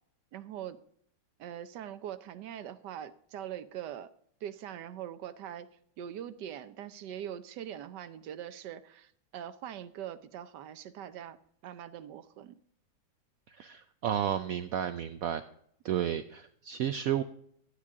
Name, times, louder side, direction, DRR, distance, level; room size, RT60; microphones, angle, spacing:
voice 1, 0.3-0.8 1.4-4.1 4.4-5.7 6.0-11.4 11.6-12.6 15.9-16.1, right 10 dB, 70° right, 12 dB, 1.2 m, -42 dB
voice 2, 13.5-15.4 15.8-17.2, right 10 dB, 90° right, 10 dB, 0.7 m, -32 dB
12.0 x 9.9 x 3.7 m, 0.65 s
omnidirectional pair, 2.0 m